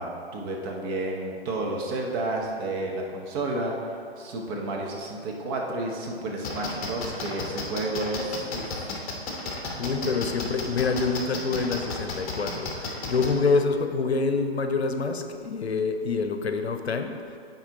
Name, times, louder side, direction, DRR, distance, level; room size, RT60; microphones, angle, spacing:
voice 1, 0.0-8.9, right 2 dB, 25° right, -1 dB, 0.8 m, -31 dB
sound 1, 6.4-13.3, left 3 dB, 35° left, 1.1 m, -32 dB
voice 2, 9.8-17.1, left 4 dB, 80° left, 6 dB, 0.7 m, -26 dB
8.6 x 4.0 x 4.0 m, 2.5 s
figure-of-eight pair, 130°, 32 cm